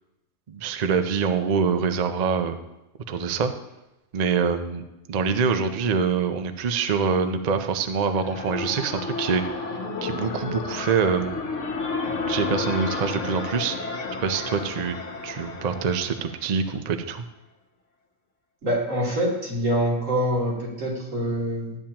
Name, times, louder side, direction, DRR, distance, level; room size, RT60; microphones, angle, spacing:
voice 1, 0.5-2.6 3.1-3.5 4.1-11.3 12.3-14.9 15.2-17.2, right 6 dB, 45° right, 7 dB, 0.5 m, -25 dB
sound 1, 7.8-16.6, left 4 dB, 70° left, 1.3 m, -32 dB
voice 2, 18.6-21.8, equal, 85° right, -5 dB, 3.2 m, -25 dB
12.5 x 8.7 x 2.9 m, 0.96 s
omnidirectional pair, 1.3 m